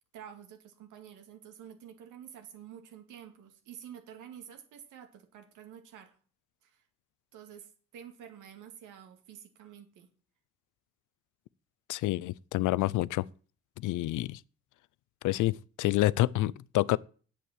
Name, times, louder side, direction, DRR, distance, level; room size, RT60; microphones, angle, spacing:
voice 1, 0.1-6.2 6.6-6.8 7.3-10.1, right 9 dB, 90° right, 2.2 m, -49 dB
voice 2, 11.9-13.2 13.8-14.4 15.2-17.0, left 17 dB, 80° left, 0.5 m, -28 dB
8.4 x 8.3 x 7.3 m
cardioid pair, 90°, 30 cm